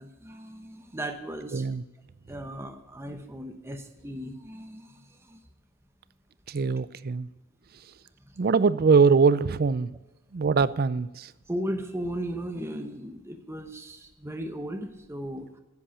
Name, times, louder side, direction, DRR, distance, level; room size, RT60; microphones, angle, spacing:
voice 1, 0.0-1.7 2.3-5.4 8.3-8.4 11.5-15.6, right 1 dB, 10° right, 5 dB, 0.9 m, -36 dB
voice 2, 6.5-7.3 8.4-9.9 10.3-11.3, right 5 dB, 45° right, 17 dB, 0.4 m, -22 dB
10.5 x 8.4 x 9.9 m, 1.0 s
head